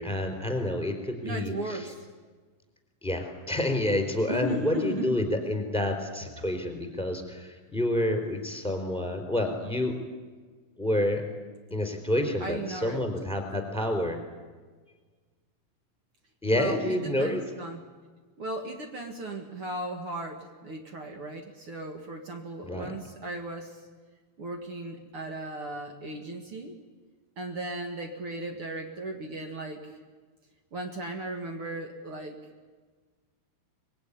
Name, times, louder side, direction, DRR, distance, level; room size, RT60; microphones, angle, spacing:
voice 1, 0.0-1.9 3.0-10.0 10.8-11.2 11.7-14.2 16.4-17.4 22.6-22.9, left 1 dB, ahead, 4 dB, 3.0 m, -28 dB
voice 2, 1.2-1.9 4.3-5.1 12.4-13.0 16.5-17.8 18.4-23.8 24.4-26.8 27.4-30.0 30.7-32.4, right 2 dB, 90° right, 3 dB, 1.2 m, -36 dB
25.0 x 22.0 x 10.0 m, 1.4 s
omnidirectional pair, 5.4 m